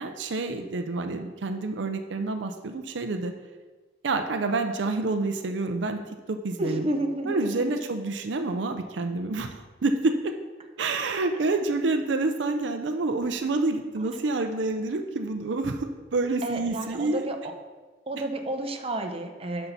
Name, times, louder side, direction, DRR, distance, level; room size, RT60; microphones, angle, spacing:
voice 1, 0.0-3.3 4.0-6.0 6.3-6.9 7.3-10.3 10.8-17.2, right 3 dB, 75° right, 6 dB, 0.6 m, -28 dB
voice 2, 6.6-7.7 16.4-17.4 18.1-19.7, right 1 dB, 30° right, 4 dB, 0.8 m, -30 dB
11.5 x 5.6 x 4.1 m, 1.3 s
head